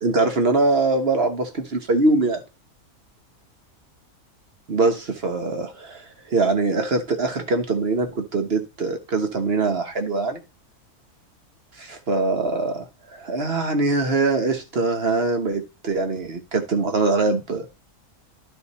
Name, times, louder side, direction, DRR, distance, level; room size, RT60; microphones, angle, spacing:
voice 1, 0.0-2.4 4.7-10.4 11.8-17.7, right 3 dB, 45° right, 1.3 m, -23 dB
12.0 x 4.2 x 4.1 m
omnidirectional pair, 1.6 m